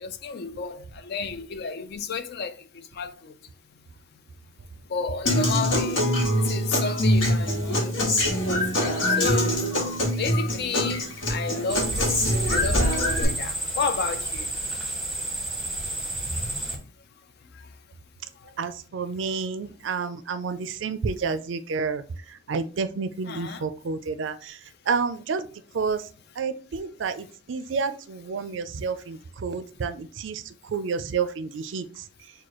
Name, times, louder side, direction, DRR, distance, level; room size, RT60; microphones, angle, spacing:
voice 1, 0.0-3.3 4.9-6.0 6.5-7.9 8.3-9.6 10.2-14.5 23.3-23.6, left 5 dB, 55° left, 0.4 m, -32 dB
Human voice / Acoustic guitar, 5.3-13.2, equal, 70° left, 1.4 m, -24 dB
sound 1, 11.7-16.8, right 1 dB, ahead, 0.8 m, -29 dB
voice 2, 18.6-25.5 25.7-26.1 26.4-32.3, right 5 dB, 65° right, 0.4 m, -30 dB
6.4 x 2.3 x 2.9 m
head